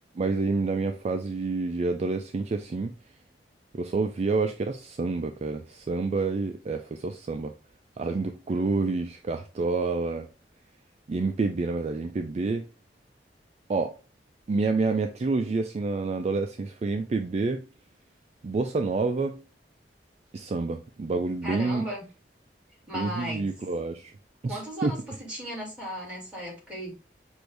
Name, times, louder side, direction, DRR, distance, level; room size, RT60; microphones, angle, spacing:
voice 1, 0.1-2.9 3.7-7.5 8.0-10.3 11.1-12.7 13.7-14.0 14.5-17.7 18.4-19.4 20.3-21.8 22.9-24.1 24.4-24.9, right 3 dB, 40° right, 0.3 m, -28 dB
voice 2, 21.4-22.0 22.9-23.5 24.5-27.0, equal, 5° right, 2.2 m, -36 dB
6.1 x 2.6 x 3.2 m
head